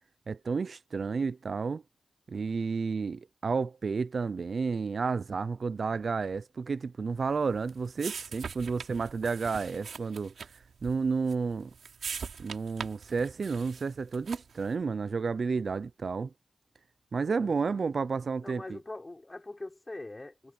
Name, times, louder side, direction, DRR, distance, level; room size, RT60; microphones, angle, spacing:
voice 1, 0.3-1.8 2.3-10.3 10.8-11.7 12.4-16.3 17.1-18.6, right 5 dB, 55° right, 0.4 m, -31 dB
sound 1, 7.2-14.7, right 6 dB, 75° right, 4.3 m, -43 dB
voice 2, 17.4-17.8 18.4-20.5, left 2 dB, 25° left, 4.8 m, -43 dB
wide cardioid pair, 85°, 0 cm